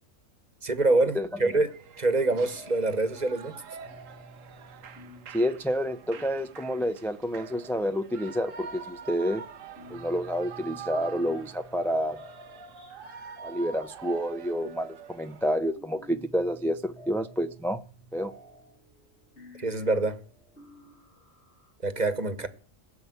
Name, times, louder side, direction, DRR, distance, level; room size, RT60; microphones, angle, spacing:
voice 1, 0.6-3.6 19.6-20.2 21.8-22.5, right 2 dB, 35° right, 1.4 m, -26 dB
Shout / Cheering, 1.6-15.5, right 7 dB, 80° right, 1.3 m, -45 dB
sound 1, 2.6-3.2 3.4-21.7, equal, 55° left, 4.4 m, -52 dB
voice 2, 5.3-9.4 9.9-12.2 13.4-17.8 18.1-18.3, equal, ahead, 0.5 m, -29 dB
17.5 x 7.2 x 9.5 m
omnidirectional pair, 1.4 m